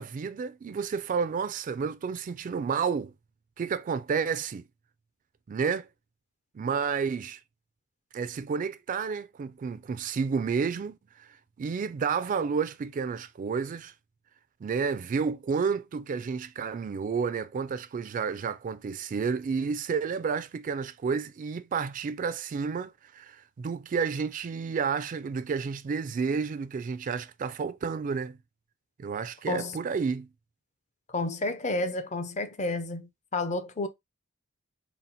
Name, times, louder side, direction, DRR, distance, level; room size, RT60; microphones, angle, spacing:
voice 1, 0.0-3.1 3.6-4.6 5.5-5.9 6.5-7.4 8.1-11.3 11.6-13.9 14.6-28.4 29.0-30.3, right 5 dB, 40° right, 0.3 m, -31 dB
voice 2, 31.1-33.9, left 2 dB, 35° left, 0.5 m, -31 dB
4.0 x 2.0 x 4.1 m
head